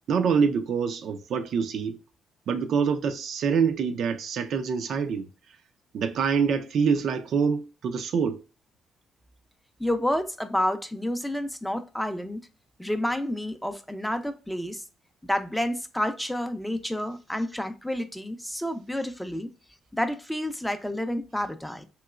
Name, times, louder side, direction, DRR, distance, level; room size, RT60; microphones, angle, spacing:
voice 1, 0.1-2.0 2.5-5.3 5.9-8.4, right 6 dB, 70° right, 0.4 m, -25 dB
voice 2, 9.8-12.4 12.8-14.8 15.2-19.5 19.9-21.8, left 1 dB, 5° left, 0.4 m, -29 dB
3.0 x 2.9 x 2.3 m
cardioid pair, 90°, 0 cm